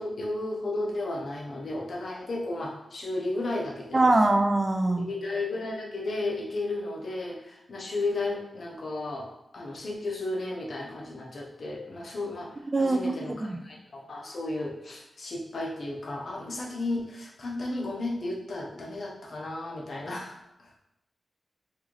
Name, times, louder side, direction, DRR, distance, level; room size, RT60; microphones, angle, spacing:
voice 1, 0.0-4.0 4.9-9.3 9.5-20.8, left 2 dB, 65° left, -1 dB, 0.7 m, -34 dB
voice 2, 3.9-5.1 12.7-13.1 13.4-13.6, right 2 dB, 30° right, 5 dB, 0.4 m, -22 dB
3.1 x 2.6 x 3.8 m, 0.84 s
wide cardioid pair, 80°, 0 cm